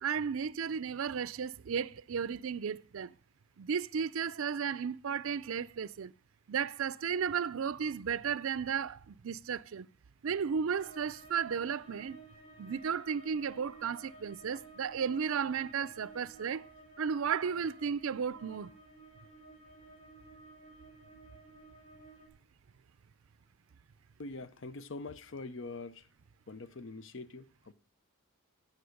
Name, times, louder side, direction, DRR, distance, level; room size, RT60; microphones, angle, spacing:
voice 1, 0.0-3.1 3.6-6.1 6.5-9.9 10.2-12.2 12.6-16.7 17.0-18.7, right 6 dB, 65° right, 0.4 m, -34 dB
sound 1, 10.7-22.3, right 3 dB, 25° left, 4.2 m, -54 dB
voice 2, 24.2-26.1 26.5-27.7, left 3 dB, 55° left, 0.6 m, -44 dB
15.0 x 6.0 x 6.4 m
head